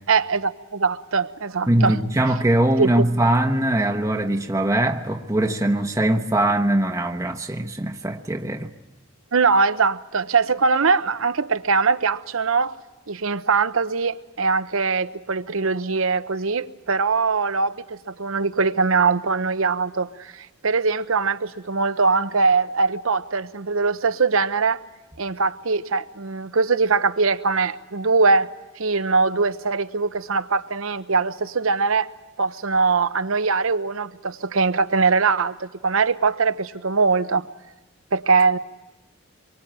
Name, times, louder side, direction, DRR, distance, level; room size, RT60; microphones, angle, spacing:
voice 1, 0.1-2.0 2.8-3.1 9.3-12.7 13.1-24.8 25.2-28.5 28.8-32.1 32.4-37.4 38.1-38.6, right 4 dB, 70° right, 0.8 m, -22 dB
voice 2, 1.7-8.7, right 1 dB, 15° right, 1.0 m, -21 dB
25.0 x 23.5 x 8.9 m
head